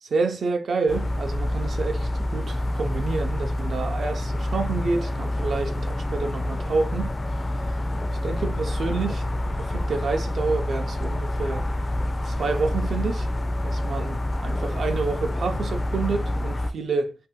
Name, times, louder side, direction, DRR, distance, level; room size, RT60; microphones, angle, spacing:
voice 1, 0.0-7.1 8.2-11.7 12.2-13.3 13.6-17.2, right 4 dB, 80° right, 0.5 m, -28 dB
sound 1, 0.9-16.7, left 1 dB, 40° left, 0.4 m, -27 dB
2.7 x 2.1 x 3.6 m
cardioid pair, 75°, 0 cm